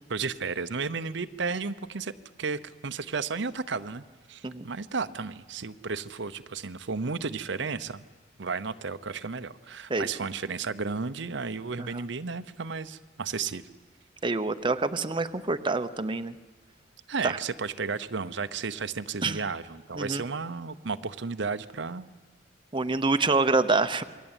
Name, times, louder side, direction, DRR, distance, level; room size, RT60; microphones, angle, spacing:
voice 1, 0.1-2.1 2.4-4.0 4.3-8.0 8.4-13.6 17.1-22.1, right 4 dB, 65° right, 11 dB, 0.8 m, -33 dB
voice 2, 14.2-16.3 17.2-17.4 19.2-19.4 20.0-20.2 22.7-24.0, right 3 dB, 25° right, 9 dB, 0.8 m, -26 dB
27.5 x 22.0 x 9.0 m, 1.4 s
head